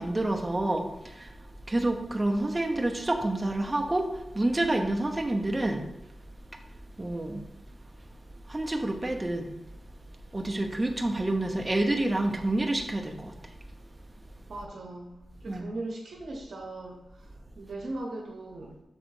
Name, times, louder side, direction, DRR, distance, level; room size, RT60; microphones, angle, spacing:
voice 1, 0.0-5.9 6.5-6.6 7.0-7.4 8.5-9.6 10.3-13.4 15.5-15.7, right 1 dB, 25° right, 3 dB, 0.8 m, -28 dB
voice 2, 14.5-15.1 15.4-17.0 17.6-18.7, right 2 dB, 70° right, 1 dB, 0.9 m, -38 dB
6.3 x 3.9 x 4.8 m, 0.92 s
cardioid pair, 75°, 0 cm